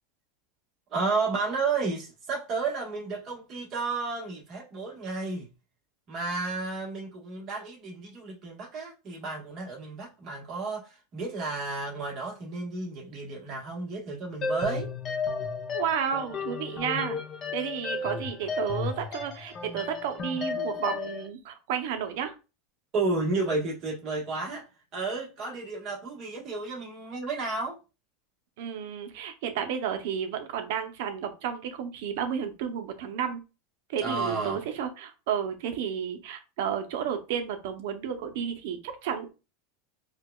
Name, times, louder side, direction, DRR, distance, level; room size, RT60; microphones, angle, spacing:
voice 1, 0.9-5.4 6.1-14.9 22.9-24.6 24.9-27.8 34.0-34.6, right 3 dB, 30° right, 1.2 m, -32 dB
sound 1, 14.4-21.3, left 4 dB, 25° left, 0.6 m, -33 dB
voice 2, 15.7-17.2 17.5-22.4 28.6-33.4 33.9-39.3, right 8 dB, 60° right, 0.6 m, -32 dB
4.6 x 2.3 x 2.2 m
supercardioid pair, 170°, 0 cm